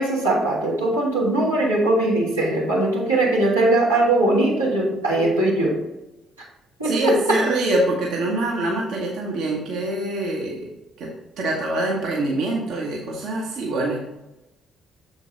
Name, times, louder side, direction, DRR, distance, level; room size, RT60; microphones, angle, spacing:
voice 1, 0.0-5.8 6.8-7.4, right 2 dB, 85° right, -7 dB, 1.6 m, -20 dB
voice 2, 6.8-10.7 11.0-11.1 11.4-14.0, right 1 dB, 55° right, -2 dB, 1.0 m, -24 dB
6.9 x 4.5 x 3.9 m, 0.98 s
figure-of-eight pair, 45°, 0 cm